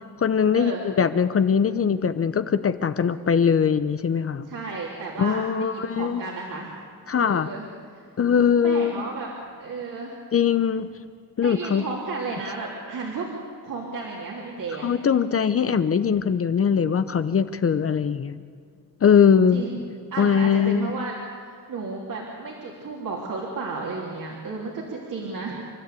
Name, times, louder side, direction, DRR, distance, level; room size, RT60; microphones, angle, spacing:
voice 1, 0.2-4.5 5.2-6.2 7.1-7.5 8.2-9.0 10.3-10.9 11.4-11.9 14.8-18.4 19.0-19.6 20.2-20.9, left 7 dB, 35° left, 12 dB, 0.7 m, -21 dB
voice 2, 4.5-6.7 7.1-7.6 8.6-9.3 9.6-10.1 11.4-13.3 13.6-14.9 15.6-16.0 19.5-19.8 20.1-21.1 21.7-25.5, right 4 dB, 55° right, -3 dB, 3.5 m, -33 dB
30.0 x 12.5 x 8.3 m, 2.3 s
cardioid pair, 140°, 39 cm